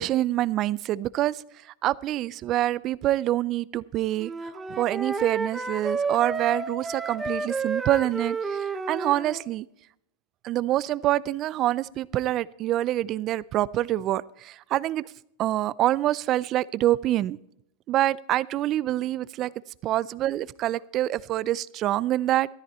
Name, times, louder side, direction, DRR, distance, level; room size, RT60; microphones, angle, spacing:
voice 1, 0.0-1.4 1.8-4.3 4.7-9.7 10.4-15.0 15.4-17.4 17.9-19.5 19.8-22.5, right 14 dB, 35° right, 0.4 m, -26 dB
Wind instrument woodwind instrument, 4.2-9.4, right 4 dB, 10° right, 0.9 m, -31 dB
13.5 x 13.0 x 4.3 m
supercardioid pair, 135°, 0 cm